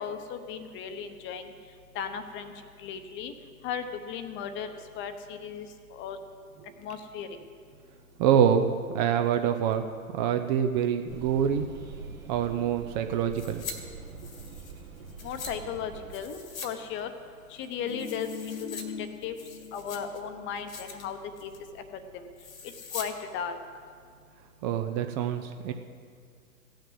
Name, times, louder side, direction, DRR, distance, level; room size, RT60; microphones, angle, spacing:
voice 1, 0.0-1.5 1.9-2.5 2.8-3.3 3.6-6.2 6.8-7.3 15.2-17.1 17.5-19.3 19.7-21.8 22.1-22.3 22.9-23.5, left 7 dB, 25° left, 8 dB, 0.9 m, -36 dB
voice 2, 8.2-9.8 10.1-11.7 12.3-13.6 24.6-25.7, right 8 dB, 30° right, 7 dB, 0.6 m, -25 dB
sound 1, 11.1-16.2, right 4 dB, 70° right, 2.0 m, -44 dB
sound 2, 13.3-13.8 14.1-15.5 16.1-16.7 17.0-17.1 17.6-18.8 19.2-20.2 20.6-21.0 21.4-21.7 22.4-23.1 23.4-23.5, left 5 dB, 65° left, 1.8 m, -42 dB
sound 3, 17.5-20.1 20.4-20.6, left 6 dB, 45° left, 0.7 m, -41 dB
16.0 x 6.4 x 7.8 m, 2.1 s
figure-of-eight pair, 100°, 44 cm